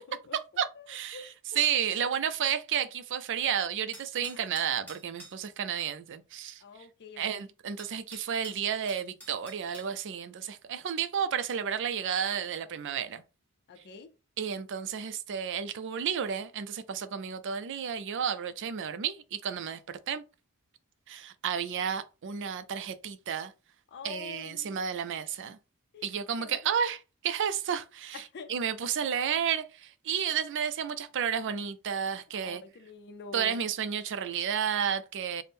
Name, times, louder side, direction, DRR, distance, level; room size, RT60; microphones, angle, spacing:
voice 1, 0.0-0.9 1.1-1.6 4.3-4.4 6.6-7.4 13.7-14.1 23.9-24.8 25.9-26.1 26.4-26.6 28.1-28.5 32.3-33.6, left 4 dB, 50° left, 0.5 m, -46 dB
voice 2, 0.6-1.3 1.5-6.6 7.2-13.2 14.4-20.2 21.1-23.5 24.0-25.6 26.0-28.2 28.5-32.6 33.3-35.4, right 8 dB, 55° right, 0.4 m, -32 dB
sound 1, 3.9-5.4 7.3-7.4 7.8-9.9, right 1 dB, 5° left, 1.6 m, -49 dB
3.5 x 2.1 x 4.2 m
head